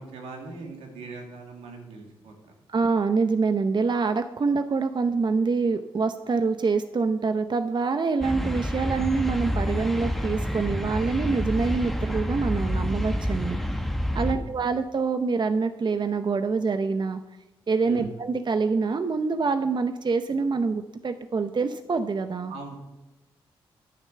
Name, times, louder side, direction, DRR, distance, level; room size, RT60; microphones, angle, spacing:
voice 1, 0.0-2.5 14.2-14.7 17.8-18.1 22.5-22.8, right 4 dB, 90° right, 1 dB, 2.2 m, -40 dB
voice 2, 2.7-13.6 14.1-17.2 17.7-22.5, right 4 dB, 45° right, 9 dB, 0.8 m, -25 dB
sound 1, 8.2-14.3, equal, ahead, 1.3 m, -28 dB
10.0 x 9.5 x 6.8 m, 0.99 s
supercardioid pair, 45°, 10 cm